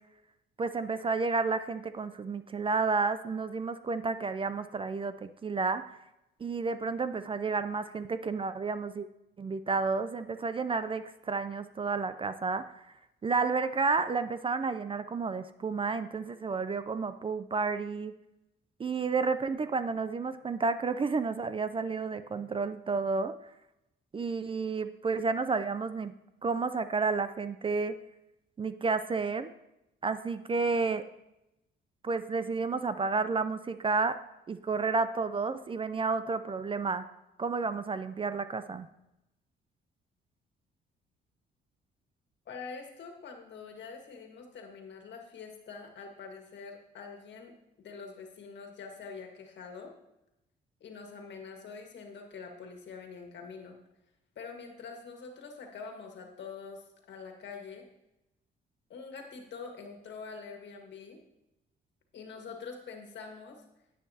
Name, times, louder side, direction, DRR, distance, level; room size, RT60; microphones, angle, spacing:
voice 1, 0.6-5.8 6.4-9.1 9.4-12.6 13.2-18.1 18.8-23.3 24.1-26.1 26.4-27.9 28.6-29.5 30.0-31.0 32.0-34.2 34.5-37.0 37.4-38.9, right 4 dB, 25° right, 12 dB, 0.4 m, -31 dB
voice 2, 42.4-49.9 50.8-53.8 54.3-57.9 58.9-61.2 62.1-63.6, left 5 dB, 65° left, 3 dB, 1.7 m, -45 dB
10.0 x 8.5 x 2.8 m, 0.90 s
cardioid pair, 90°, 20 cm